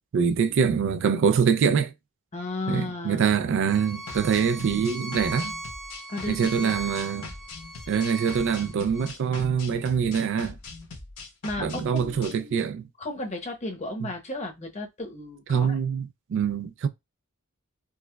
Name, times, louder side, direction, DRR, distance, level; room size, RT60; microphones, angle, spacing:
voice 1, 0.1-1.9 2.7-5.6 6.3-7.3 7.9-10.6 11.6-12.9 15.5-16.9, right 6 dB, 60° right, 0.4 m, -24 dB
voice 2, 2.3-3.3 6.1-6.7 11.4-12.5 13.0-15.8, left 2 dB, 30° left, 0.8 m, -34 dB
Bowed string instrument, 3.7-9.1, right 1 dB, ahead, 0.7 m, -38 dB
sound 1, 4.1-12.4, left 3 dB, 70° left, 1.0 m, -42 dB
4.6 x 2.1 x 2.2 m
head